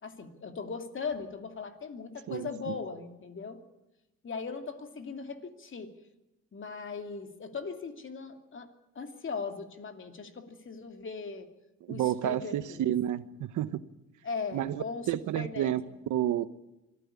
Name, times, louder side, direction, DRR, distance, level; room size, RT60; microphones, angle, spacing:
voice 1, 0.0-3.6 4.2-5.9 6.5-11.5 11.9-12.9 14.2-15.1 15.3-15.7, left 5 dB, 40° left, 6 dB, 2.7 m, -39 dB
voice 2, 2.3-2.8 11.8-13.8 14.5-15.8 16.1-16.5, right 12 dB, 80° right, 14 dB, 1.1 m, -30 dB
24.5 x 14.5 x 8.5 m, 0.99 s
cardioid pair, 90°, 30 cm